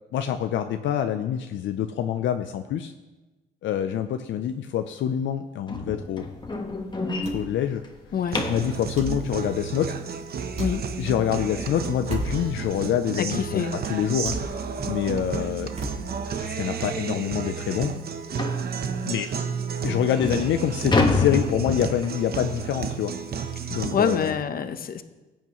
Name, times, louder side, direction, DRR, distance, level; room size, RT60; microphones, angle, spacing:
voice 1, 0.1-2.9 3.6-6.2 7.3-7.8 8.5-9.9 11.0-14.4 14.8-15.7 16.4-17.9 19.0-19.3 19.8-23.1 23.7-24.4, left 10 dB, 75° left, 7 dB, 0.6 m, -26 dB
sound 1, 5.7-8.8 11.6-11.7 12.2-12.4 12.7-12.8 13.3-13.4 14.5-14.6 15.0-15.2 15.8-15.9 16.3-16.4 16.9-17.0 18.4-18.7 19.4-19.5 20.0-22.3, left 3 dB, 20° left, 1.3 m, -27 dB
sound 2, 6.1-16.6, right 1 dB, 35° right, 3.4 m, -39 dB
voice 2, 8.1-8.4 10.6-10.8 13.2-13.7 23.6-25.0, left 7 dB, 50° left, 10 dB, 0.9 m, -26 dB
Guitar, 8.3-24.3, right 6 dB, 50° right, 0.9 m, -32 dB
16.5 x 8.7 x 3.1 m, 1.1 s
cardioid pair, 90°, 20 cm